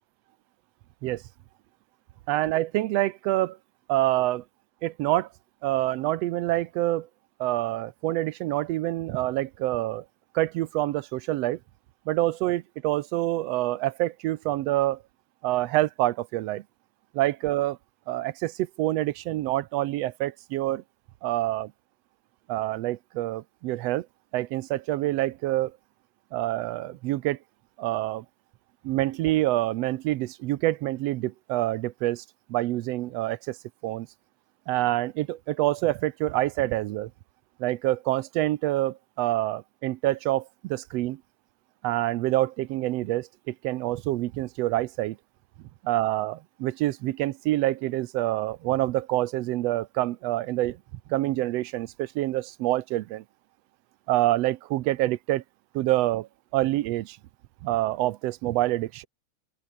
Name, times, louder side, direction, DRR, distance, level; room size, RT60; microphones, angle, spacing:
voice 1, 2.3-3.6 3.9-4.4 4.8-5.3 5.6-7.1 7.4-10.0 10.3-11.6 12.1-15.0 15.4-16.6 17.1-17.8 18.1-20.8 21.2-21.7 22.5-24.1 24.3-25.7 26.3-27.4 27.8-28.2 28.8-33.6 33.8-34.1 34.7-37.1 37.6-41.2 41.8-45.2 45.8-50.8 51.1-53.2 54.1-55.4 55.7-57.2 57.6-59.1, right 16 dB, 70° right, 1.7 m, -27 dB
open air
omnidirectional pair, 3.3 m